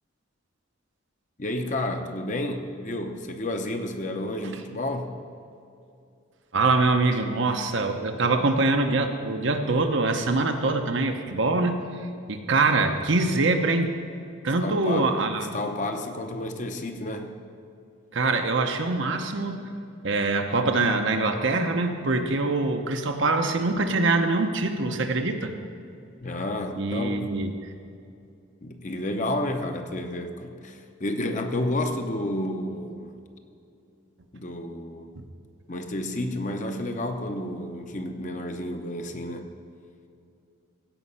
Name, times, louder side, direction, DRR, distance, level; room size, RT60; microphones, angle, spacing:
voice 1, 1.4-5.2 14.4-17.3 26.2-27.3 28.6-33.1 34.3-35.1 35.7-39.5, left 1 dB, 40° left, 5 dB, 0.8 m, -31 dB
voice 2, 6.5-12.0 12.3-13.9 14.4-15.5 18.1-19.7 20.0-25.5 26.8-27.5 35.2-35.3, right 3 dB, 65° right, 5 dB, 0.8 m, -24 dB
16.0 x 5.5 x 5.6 m, 2.6 s
head